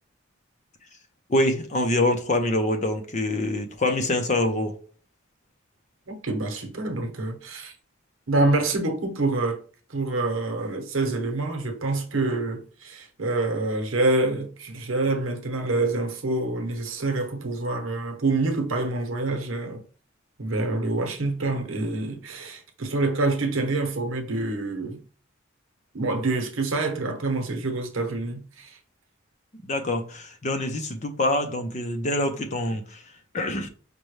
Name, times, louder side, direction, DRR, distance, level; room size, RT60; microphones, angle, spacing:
voice 1, 1.3-4.8 29.6-33.0 33.3-33.7, left 1 dB, 35° left, 0.6 m, -25 dB
voice 2, 6.1-7.7 8.3-9.6 9.9-19.8 20.4-25.0 25.9-28.8, right 2 dB, 85° right, 0.9 m, -26 dB
5.3 x 2.2 x 3.2 m
head